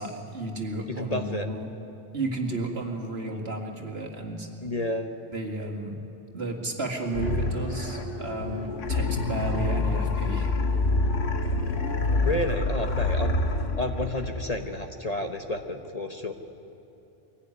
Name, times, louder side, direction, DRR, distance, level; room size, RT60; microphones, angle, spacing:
voice 1, 0.0-1.7 2.1-4.5 5.3-6.0 6.3-10.5, right 2 dB, 55° right, 2 dB, 2.5 m, -32 dB
voice 2, 0.9-1.5 4.6-5.2 12.2-13.3 13.8-16.3, left 1 dB, 35° left, 5 dB, 1.1 m, -30 dB
sound 1, 7.0-13.7, equal, 50° left, 1.9 m, -34 dB
sound 2, 7.1-8.3 8.8-14.8, left 3 dB, 85° left, 1.6 m, -27 dB
23.5 x 17.0 x 9.8 m, 2.8 s
omnidirectional pair, 1.2 m